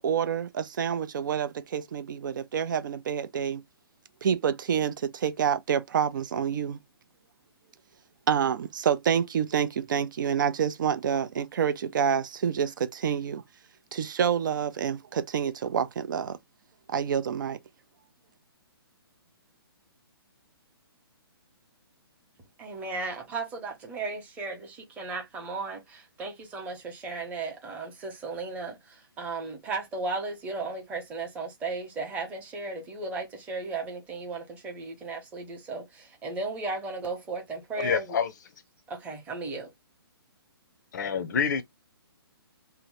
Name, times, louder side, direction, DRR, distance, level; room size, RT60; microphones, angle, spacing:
voice 1, 0.0-3.6 4.2-6.8 8.3-13.4 13.9-16.4 16.9-17.6, right 8 dB, 50° right, 0.4 m, -28 dB
voice 2, 22.6-38.2 38.9-39.7, right 3 dB, 10° right, 0.8 m, -35 dB
voice 3, 37.7-38.3 40.9-41.6, left 6 dB, 45° left, 0.5 m, -27 dB
2.7 x 2.0 x 3.1 m
hypercardioid pair, 155°, 13 cm